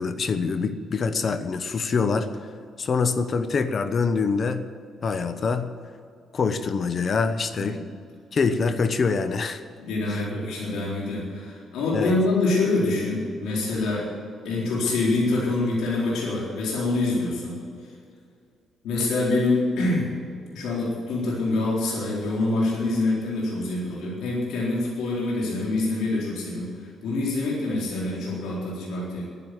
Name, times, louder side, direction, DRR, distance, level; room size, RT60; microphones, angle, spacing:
voice 1, 0.0-2.3 2.8-4.7 5.0-5.7 6.3-7.8 8.3-9.6 10.1-10.2 11.9-12.1, left 5 dB, 45° left, 10 dB, 0.9 m, -25 dB
voice 2, 7.5-7.9 9.8-14.1 14.4-17.6 18.8-20.1 20.5-29.3, left 2 dB, 85° left, -5 dB, 4.0 m, -25 dB
11.0 x 10.5 x 9.6 m, 2.3 s
cardioid pair, 90°, 0 cm